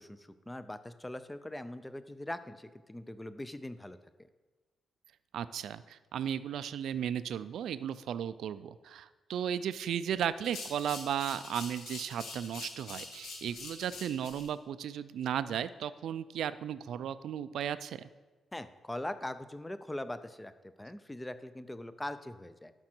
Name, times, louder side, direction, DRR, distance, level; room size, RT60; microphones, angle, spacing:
voice 1, 0.0-4.3 18.5-20.5 20.8-22.7, left 1 dB, 10° left, 12 dB, 0.5 m, -41 dB
voice 2, 5.3-18.1, right 9 dB, 85° right, 14 dB, 0.3 m, -35 dB
sound 1, 10.4-14.5, left 3 dB, 90° left, 1.6 m, -45 dB
11.5 x 6.1 x 4.4 m, 1.3 s
cardioid pair, 105°, 0 cm